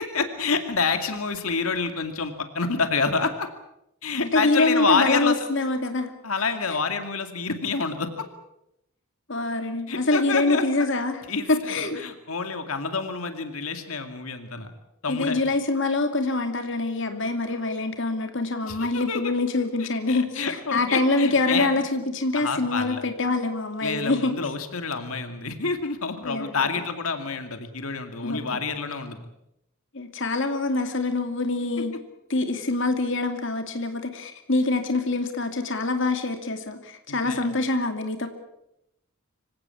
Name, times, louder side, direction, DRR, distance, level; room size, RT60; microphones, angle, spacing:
voice 1, 0.0-3.5 4.0-5.4 6.2-8.1 9.9-10.6 11.3-14.7 15.0-15.4 18.6-19.2 19.8-21.7 22.3-23.0 23.8-29.2 37.1-37.4, left 4 dB, 85° left, 7 dB, 2.3 m, -28 dB
voice 2, 4.2-6.1 9.3-11.2 11.5-12.0 15.1-24.5 26.2-26.7 28.2-28.6 29.9-31.9 32.3-38.3, left 2 dB, 60° left, 6 dB, 2.5 m, -25 dB
25.5 x 17.0 x 8.5 m, 0.82 s
head